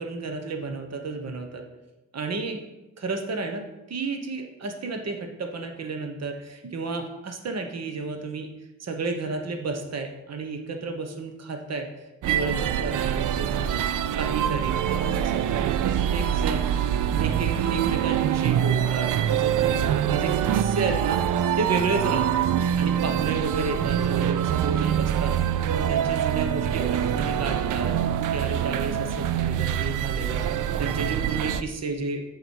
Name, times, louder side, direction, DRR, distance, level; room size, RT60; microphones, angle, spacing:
voice 1, 0.0-1.7 2.1-2.6 3.0-8.5 8.8-11.9 12.2-13.7 14.1-16.6 17.2-22.3 22.8-27.9 28.3-32.2, right 3 dB, 55° right, 4 dB, 1.2 m, -32 dB
sound 1, 12.2-31.6, right 10 dB, 80° right, 0.5 m, -25 dB
7.8 x 6.9 x 4.5 m, 1.0 s
cardioid pair, 90°, 30 cm